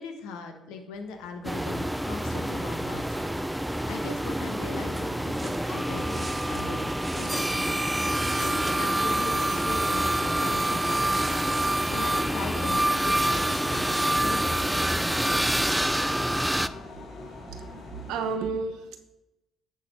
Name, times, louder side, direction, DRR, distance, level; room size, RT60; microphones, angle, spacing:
voice 1, 0.0-15.8, left 4 dB, 85° left, 4 dB, 1.2 m, -40 dB
sound 1, 0.9-18.4, left 2 dB, 60° left, 2.8 m, -45 dB
sound 2, 1.4-16.7, right 1 dB, 5° right, 0.4 m, -27 dB
sound 3, 5.4-11.8, right 2 dB, 25° right, 1.0 m, -43 dB
voice 2, 17.4-19.0, right 4 dB, 85° right, 6 dB, 1.0 m, -33 dB
10.0 x 4.1 x 5.2 m, 0.93 s
supercardioid pair, 65°, 0 cm